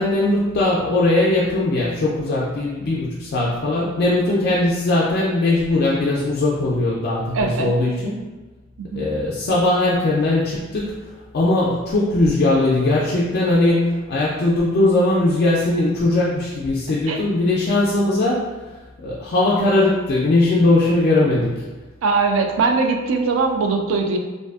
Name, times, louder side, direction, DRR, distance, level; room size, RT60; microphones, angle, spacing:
voice 1, 0.0-8.2 8.9-10.9 11.3-18.5 19.0-21.6, left 2 dB, 55° left, -5 dB, 0.3 m, -19 dB
voice 2, 7.3-7.7 8.8-9.1 17.1-17.2 22.0-24.2, right 4 dB, 80° right, 4 dB, 0.3 m, -21 dB
2.5 x 2.3 x 2.4 m, 1.2 s
head